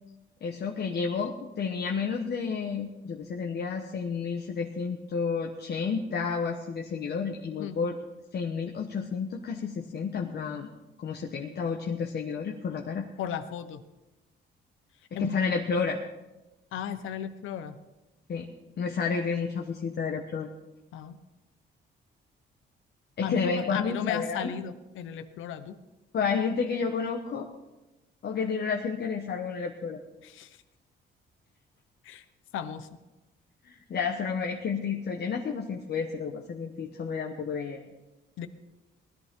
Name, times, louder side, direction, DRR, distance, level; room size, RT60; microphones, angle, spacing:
voice 1, 0.4-7.9 8.3-10.7 11.0-13.1 15.1-16.0 18.3-18.5 18.8-20.5 23.2-24.5 26.1-27.5 28.2-30.0 33.6-37.8, left 5 dB, 55° left, 1 dB, 1.3 m, -31 dB
voice 2, 13.2-13.8 15.1-15.3 16.7-17.8 20.9-21.2 23.2-25.8 30.2-30.6 32.0-32.2 32.5-32.9 38.4-38.5, left 8 dB, 85° left, 11 dB, 1.0 m, -35 dB
19.0 x 13.5 x 3.8 m, 1.0 s
cardioid pair, 90°, 20 cm